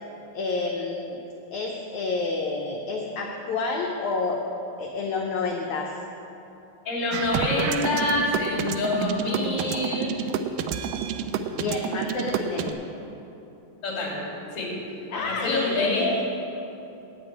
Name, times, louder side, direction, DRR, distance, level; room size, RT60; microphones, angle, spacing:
voice 1, 0.3-1.2 1.5-4.4 4.8-5.9 11.5-12.8 15.1-16.2, left 3 dB, 85° left, 0 dB, 1.6 m, -28 dB
voice 2, 6.9-10.2 13.8-14.2 14.5-14.7 15.1-16.2, left 2 dB, 40° left, -8 dB, 3.6 m, -26 dB
sound 1, 7.1-12.7, right 9 dB, 85° right, 1.9 m, -29 dB
8.8 x 7.1 x 8.9 m, 3.0 s
omnidirectional pair, 4.4 m